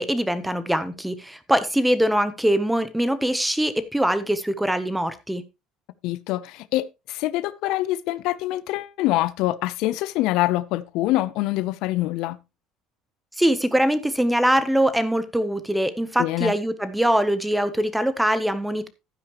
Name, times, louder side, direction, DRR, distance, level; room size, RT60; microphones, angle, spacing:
voice 1, 0.0-5.4 13.4-18.9, right 1 dB, 5° right, 0.7 m, -22 dB
voice 2, 6.0-12.4 16.2-16.5, left 16 dB, 60° left, 0.5 m, -25 dB
11.5 x 9.9 x 2.9 m
cardioid pair, 170°, 0 cm